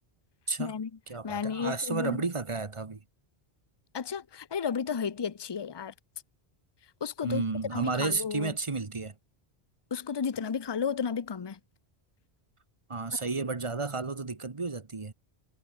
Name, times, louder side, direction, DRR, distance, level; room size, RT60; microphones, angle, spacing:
voice 1, 0.6-0.9 1.2-2.2 3.9-5.9 7.0-7.4 7.7-8.5 9.9-11.6, left 6 dB, 30° left, 0.6 m, -33 dB
voice 2, 1.1-3.0 7.2-9.1 12.9-15.1, right 3 dB, 30° right, 1.1 m, -32 dB
omnidirectional pair, 1.1 m